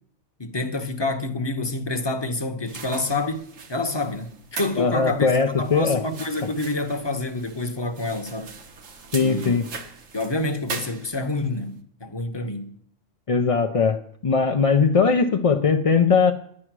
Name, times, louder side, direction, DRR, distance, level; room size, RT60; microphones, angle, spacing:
voice 1, 0.4-5.3 5.6-8.5 9.2-9.6 10.1-12.8, left 2 dB, 20° left, 1.0 m, -28 dB
sound 1, 2.7-11.5, right 5 dB, 75° right, 1.6 m, -40 dB
voice 2, 4.8-6.0 6.4-6.5 9.1-9.7 13.3-16.3, left 5 dB, 40° left, 0.5 m, -20 dB
11.0 x 9.8 x 6.1 m
omnidirectional pair, 1.4 m